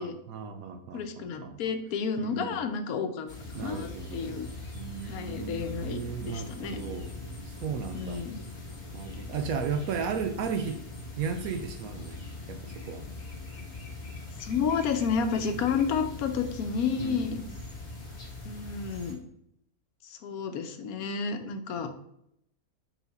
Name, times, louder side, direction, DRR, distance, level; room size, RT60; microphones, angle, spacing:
voice 1, 0.0-1.6 2.2-2.7 3.5-4.4 4.8-7.1 7.4-8.2 8.9-10.8 11.2-12.2 12.5-13.0 17.0-17.5 21.8-21.9, right 6 dB, 75° right, 8 dB, 1.0 m, -35 dB
voice 2, 0.9-4.5 5.0-6.0 6.3-6.8 7.9-8.4 14.4-17.4 18.4-19.2 20.0-21.9, left 6 dB, 80° left, 7 dB, 1.2 m, -31 dB
sound 1, 3.3-19.1, left 2 dB, 30° left, 1.4 m, -41 dB
5.5 x 4.4 x 4.1 m, 0.75 s
omnidirectional pair, 1.5 m